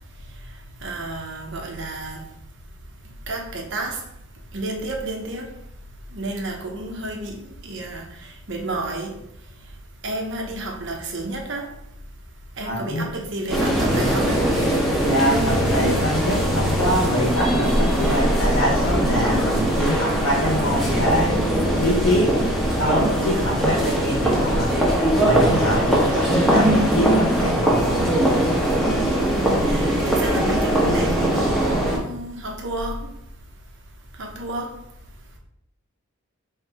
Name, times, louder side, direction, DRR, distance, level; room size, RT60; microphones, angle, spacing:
voice 1, 0.8-2.2 3.3-4.0 4.5-5.5 6.1-8.0 8.5-9.1 10.0-11.7 12.6-14.4 19.0-19.5 23.2-23.6 25.4-25.7 29.1-33.0 34.2-34.7, right 2 dB, 55° right, 0.8 m, -31 dB
voice 2, 12.6-13.0 15.0-21.4 21.8-22.3 22.8-24.7 25.1-27.9, equal, 75° left, 1.0 m, -24 dB
sound 1, 13.5-32.0, right 1 dB, ahead, 0.9 m, -21 dB
3.2 x 3.1 x 4.6 m
head